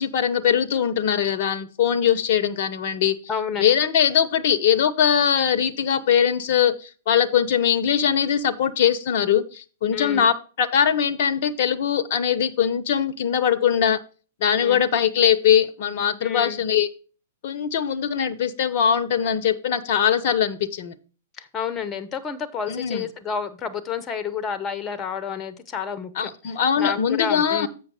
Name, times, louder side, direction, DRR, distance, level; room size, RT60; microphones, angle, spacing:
voice 1, 0.0-3.2 3.6-14.0 14.4-16.9 17.4-20.9 22.7-23.1 26.2-27.7, left 8 dB, 50° left, 14 dB, 0.7 m, -21 dB
voice 2, 3.3-3.6 9.9-10.3 14.6-14.8 16.2-16.6 21.4-26.3 26.8-27.7, left 6 dB, 25° left, 13 dB, 0.9 m, -30 dB
7.5 x 5.9 x 4.8 m, 0.37 s
figure-of-eight pair, 110°, 0 cm